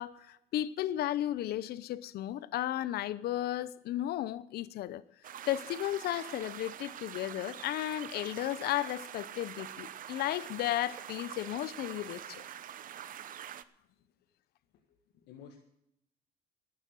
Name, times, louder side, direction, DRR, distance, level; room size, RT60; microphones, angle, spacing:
voice 1, 0.0-5.0 5.5-12.4, left 13 dB, 70° left, 0.7 m, -34 dB
sound 1, 5.2-13.6, right 10 dB, 55° right, 0.8 m, -45 dB
voice 2, 14.9-15.6, left 7 dB, 85° left, 1.9 m, -53 dB
12.5 x 9.9 x 7.6 m
cardioid pair, 110°, 17 cm